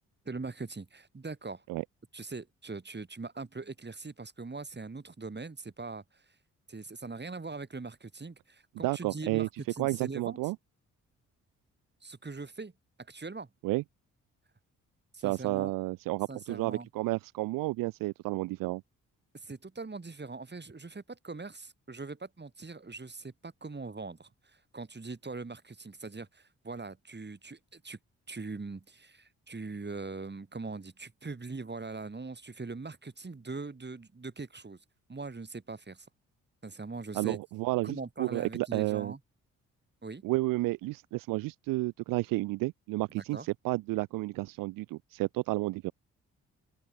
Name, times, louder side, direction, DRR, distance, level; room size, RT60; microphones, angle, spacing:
voice 1, 0.3-1.6 2.1-6.2 6.7-10.4 12.0-12.7 13.1-13.5 15.1-15.7 16.3-16.9 19.3-28.0 28.3-34.8 35.1-36.1 36.6-37.4 37.8-39.2 40.0-40.2 43.1-43.5, right 3 dB, 30° right, 7.2 m, -41 dB
voice 2, 8.8-9.5 9.8-10.6 13.6-13.8 15.2-18.8 37.1-39.1 40.2-45.9, right 20 dB, 80° right, 0.5 m, -31 dB
open air
supercardioid pair, 50°, 33 cm